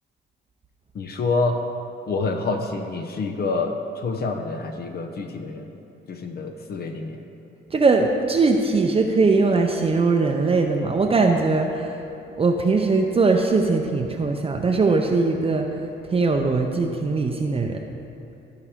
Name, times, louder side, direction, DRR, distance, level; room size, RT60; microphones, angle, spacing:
voice 1, 0.9-1.6 2.1-5.8 6.1-7.2, left 3 dB, 50° left, 4 dB, 0.7 m, -27 dB
voice 2, 7.7-11.8 12.4-15.7 16.1-17.8, right 3 dB, 30° right, 2 dB, 0.6 m, -20 dB
13.5 x 4.8 x 3.6 m, 2.9 s
cardioid pair, 90°, 20 cm